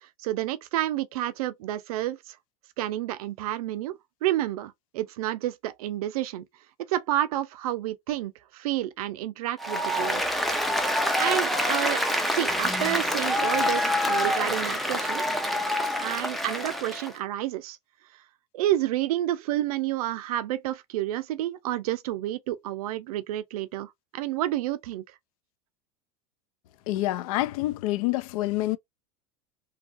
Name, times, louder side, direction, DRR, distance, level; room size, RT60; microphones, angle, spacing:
voice 1, 0.0-2.4 2.8-6.5 6.8-10.2 11.2-15.2 16.0-17.8 18.5-25.0, right 13 dB, 90° right, 0.5 m, -30 dB
Applause, 9.6-17.1, left 1 dB, ahead, 0.3 m, -26 dB
voice 2, 26.9-28.8, left 16 dB, 75° left, 0.4 m, -27 dB
2.7 x 2.4 x 2.4 m
supercardioid pair, 145°, 18 cm